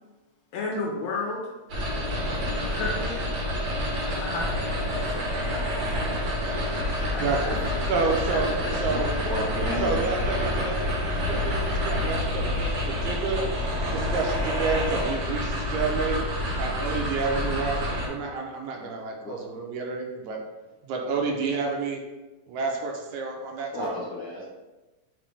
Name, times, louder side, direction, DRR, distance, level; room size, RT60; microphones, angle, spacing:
voice 1, 0.5-1.4 2.7-3.2 4.2-6.0 7.1-8.8 9.3-9.4 9.8-11.7, left 3 dB, 75° left, -2 dB, 1.7 m, -35 dB
sound 1, 1.7-18.1, left 1 dB, 65° right, 1.2 m, -28 dB
voice 2, 7.2-7.6 7.9-9.2 9.8-13.5 13.9-16.2 16.6-20.4 20.8-22.0 22.5-23.9, right 4 dB, 80° right, 1 dB, 1.9 m, -29 dB
voice 3, 8.9-10.0 19.1-19.4 23.7-24.4, left 2 dB, 50° left, -8 dB, 1.7 m, -33 dB
5.2 x 3.1 x 3.3 m, 1.1 s
omnidirectional pair, 3.5 m